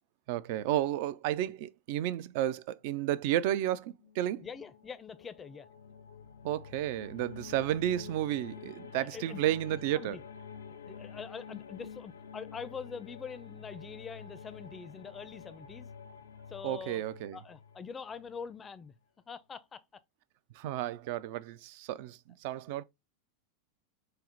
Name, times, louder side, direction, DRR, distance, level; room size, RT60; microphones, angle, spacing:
voice 1, 0.3-4.5 6.4-10.2 16.6-17.4 20.6-22.8, right 13 dB, 60° right, 0.3 m, -32 dB
sound 1, 4.0-18.7, left 7 dB, 85° left, 0.3 m, -49 dB
voice 2, 4.4-5.7 9.0-9.4 9.9-10.2 10.7-15.9 16.5-17.0 17.3-18.9 19.3-19.8, left 6 dB, 25° left, 0.4 m, -44 dB
4.4 x 2.0 x 3.8 m
hypercardioid pair, 95°, 0 cm